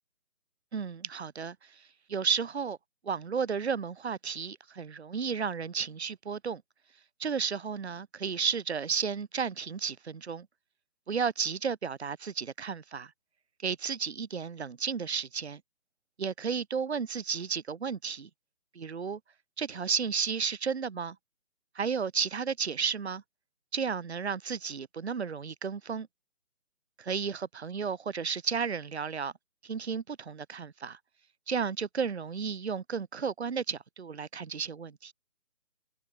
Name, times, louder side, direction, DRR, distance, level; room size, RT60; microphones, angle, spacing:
voice 1, 0.7-1.8 2.1-2.8 3.0-6.6 7.2-10.5 11.1-13.1 13.6-15.6 16.2-18.3 18.7-19.2 19.6-21.2 21.7-23.2 23.7-26.1 27.1-29.3 29.6-31.0 31.5-35.1, right 6 dB, 50° right, 1.6 m, -33 dB
figure-of-eight pair, 165°, 43 cm